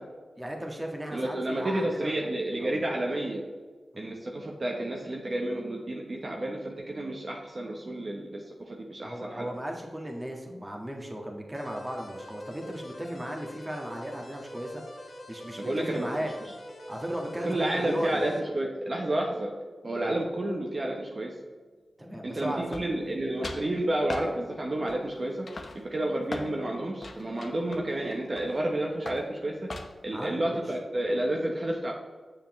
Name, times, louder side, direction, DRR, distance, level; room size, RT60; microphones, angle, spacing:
voice 1, 0.4-2.1 2.6-2.8 3.9-4.2 9.0-14.8 15.3-16.3 16.9-18.3 22.0-22.6 30.1-30.6, equal, 20° right, 1 dB, 1.6 m, -36 dB
voice 2, 1.1-3.4 4.0-9.5 15.6-16.1 16.4-16.5 17.4-19.5 19.8-21.3 22.2-25.5 25.7-29.7 30.0-31.9, right 1 dB, 45° right, -1 dB, 1.0 m, -30 dB
sound 1, 11.5-18.4, left 1 dB, 75° left, 1.5 m, -45 dB
sound 2, 22.7-23.2 23.4-23.7 24.1-24.3 24.9-25.2 25.5-26.5 27.0-28.6 29.1-29.3 29.7-30.1, left 2 dB, 55° left, 0.9 m, -39 dB
7.6 x 6.7 x 3.2 m, 1.5 s
cardioid pair, 60°, 0 cm